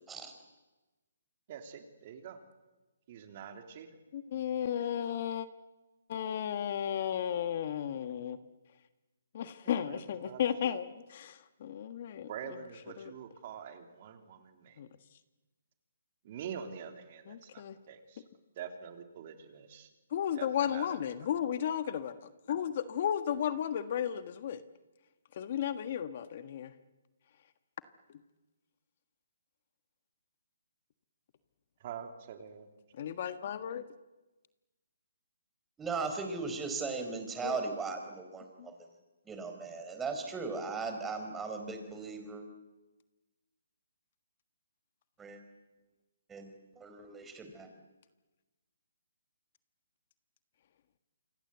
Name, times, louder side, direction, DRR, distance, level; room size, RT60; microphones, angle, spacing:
voice 1, 1.5-2.4 3.1-4.0 9.6-10.7 12.3-14.8 16.2-18.2 18.5-19.9 20.3-21.0 31.8-32.7, right 8 dB, 40° right, 6 dB, 3.4 m, -45 dB
voice 2, 4.1-5.5 6.1-8.4 9.3-12.3 13.0-13.1 14.8-14.9 17.3-17.8 20.1-22.2 22.5-24.6 25.3-26.7 32.9-33.8 37.4-37.6 38.6-38.7, left 9 dB, 45° left, 11 dB, 1.5 m, -34 dB
voice 3, 35.8-38.9 39.2-42.4 45.2-45.4 46.3-47.7, right 4 dB, 10° right, 5 dB, 4.6 m, -38 dB
28.5 x 25.5 x 8.1 m, 1.1 s
hypercardioid pair, 155°, 0 cm